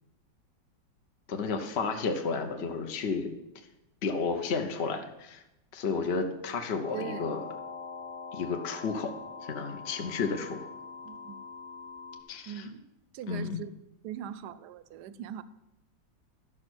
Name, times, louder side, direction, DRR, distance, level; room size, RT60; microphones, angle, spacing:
voice 1, 1.3-3.3 4.0-5.4 5.7-7.5 8.3-9.2 9.4-10.7 12.3-12.7 13.3-13.6, left 4 dB, 50° left, 5 dB, 0.9 m, -32 dB
sound 1, 6.8-12.2, left 5 dB, 70° left, 1.5 m, -43 dB
voice 2, 6.9-7.3 11.0-11.4 12.5-12.9 13.1-13.7 14.0-15.4, right 9 dB, 70° right, 15 dB, 1.1 m, -40 dB
12.0 x 6.2 x 6.2 m, 0.90 s
omnidirectional pair, 2.0 m